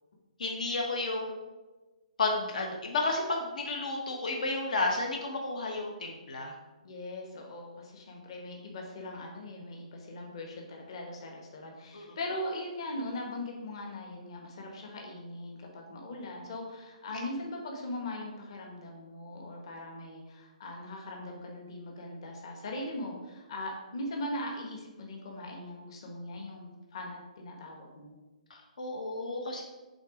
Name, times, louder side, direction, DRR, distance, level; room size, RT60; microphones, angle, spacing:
voice 1, 0.4-1.4 2.2-6.5 11.9-12.1 28.5-29.6, left 3 dB, 65° left, 0 dB, 1.2 m, -32 dB
voice 2, 6.8-28.1, left 1 dB, 40° left, 0 dB, 1.4 m, -40 dB
8.0 x 3.9 x 4.9 m, 1.2 s
hypercardioid pair, 175°, 4 cm